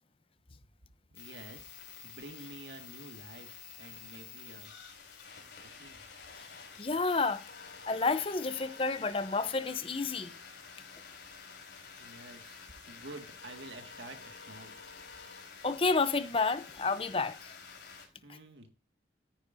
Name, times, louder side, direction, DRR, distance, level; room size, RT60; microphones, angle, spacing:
sound 1, 1.1-18.1, left 5 dB, 85° left, 3.9 m, -50 dB
voice 1, 1.1-1.7 2.0-3.5 3.8-4.7 5.6-6.0 12.0-12.6 12.9-14.8 18.2-18.7, right 2 dB, 85° right, 2.0 m, -49 dB
voice 2, 6.8-7.4 7.9-10.3 15.6-17.5, left 3 dB, 30° left, 0.7 m, -30 dB
13.5 x 10.0 x 2.7 m
head